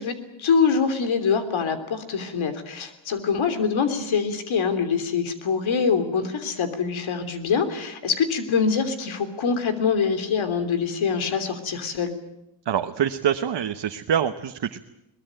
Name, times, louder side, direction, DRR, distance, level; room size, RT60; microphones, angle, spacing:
voice 1, 0.0-12.1, left 6 dB, 85° left, 8 dB, 3.3 m, -24 dB
voice 2, 12.6-14.9, right 9 dB, 60° right, 6 dB, 1.1 m, -25 dB
22.5 x 20.5 x 9.0 m, 0.88 s
wide cardioid pair, 115°, 46 cm